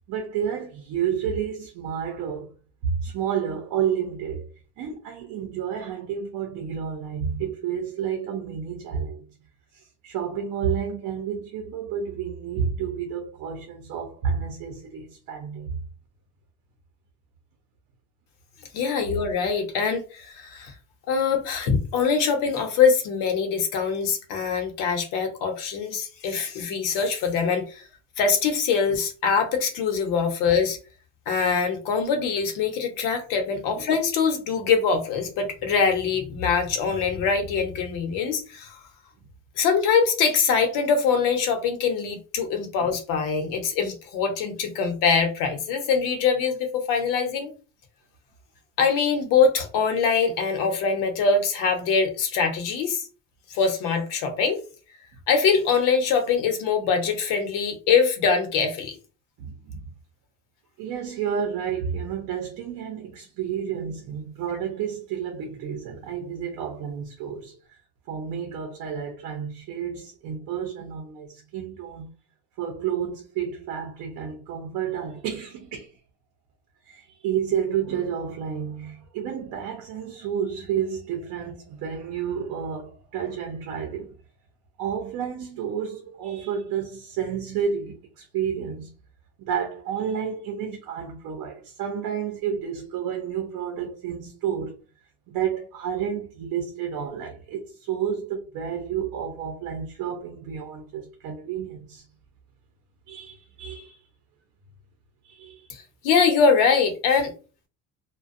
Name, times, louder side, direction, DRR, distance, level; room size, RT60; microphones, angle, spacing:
voice 1, 0.1-2.5 2.8-4.5 4.8-9.2 9.7-15.8 33.7-33.9 42.8-42.9 59.4-59.9 60.8-67.8 68.1-72.1 72.6-76.0 76.9-84.1 84.8-88.9 89.4-94.8 95.3-102.0 103.1-104.0 105.2-105.7, right 8 dB, 70° right, 0.7 m, -30 dB
voice 2, 18.7-20.7 21.1-27.9 28.2-30.8 31.3-38.8 39.6-47.5 48.8-53.0 53.5-54.6 55.3-59.0 105.7-107.3, left 5 dB, 80° left, 0.8 m, -23 dB
2.4 x 2.2 x 2.5 m
cardioid pair, 165°, 32 cm